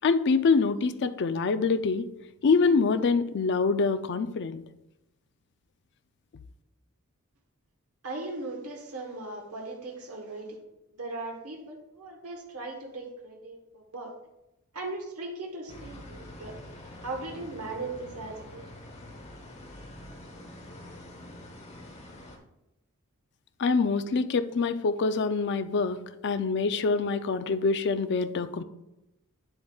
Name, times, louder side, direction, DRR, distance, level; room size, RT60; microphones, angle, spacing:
voice 1, 0.0-2.1 2.4-4.6 23.6-28.6, left 4 dB, 55° left, 10 dB, 0.4 m, -25 dB
voice 2, 8.0-10.6 11.0-14.1 14.7-16.6 16.9-18.7, right 2 dB, 80° right, 0 dB, 1.2 m, -38 dB
sound 1, 15.7-22.4, left 1 dB, 30° left, 1.1 m, -46 dB
8.6 x 7.8 x 2.3 m, 0.91 s
head